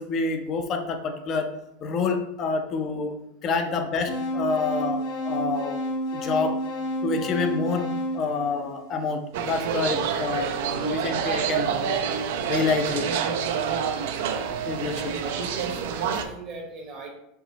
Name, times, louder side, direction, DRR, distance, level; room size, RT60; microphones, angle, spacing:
voice 1, 0.0-1.5 1.8-3.1 3.4-5.8 6.1-6.6 7.0-12.1 12.5-13.1 14.7-15.2, left 4 dB, 40° left, 6 dB, 0.5 m, -28 dB
sound 1, 4.1-9.2, equal, 60° left, 1.0 m, -30 dB
sound 2, 9.3-16.2, right 7 dB, 70° right, 0.4 m, -27 dB
voice 2, 15.0-17.1, right 3 dB, 45° right, 0 dB, 0.9 m, -40 dB
4.5 x 2.0 x 4.0 m, 0.81 s
hypercardioid pair, 115°, 0 cm